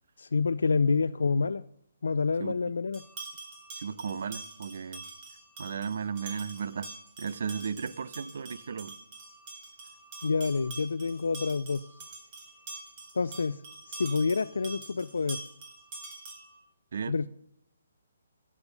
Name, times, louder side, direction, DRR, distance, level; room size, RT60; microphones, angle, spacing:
voice 1, 0.2-1.6 2.0-3.0 10.2-11.8 13.1-15.4 17.1-17.3, left 4 dB, 70° left, 0.4 m, -28 dB
sound 1, 2.9-16.6, right 3 dB, 30° right, 4.2 m, -45 dB
voice 2, 3.7-5.0 5.6-6.9 7.2-8.9 16.9-17.1, right 6 dB, 60° right, 0.7 m, -35 dB
15.0 x 9.9 x 6.8 m
figure-of-eight pair, 135°, 0 cm